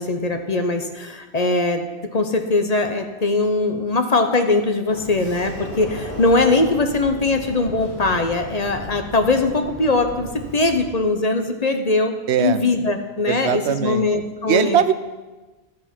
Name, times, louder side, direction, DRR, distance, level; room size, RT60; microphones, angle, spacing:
voice 1, 0.0-1.8 2.1-14.8, left 3 dB, 40° left, 6 dB, 1.0 m, -21 dB
Sliding door, 4.9-10.8, equal, 70° left, 4.5 m, -35 dB
voice 2, 12.3-12.6 13.3-14.1 14.5-14.9, right 9 dB, 85° right, 13 dB, 0.9 m, -20 dB
12.5 x 8.2 x 6.1 m, 1.2 s
omnidirectional pair, 1.1 m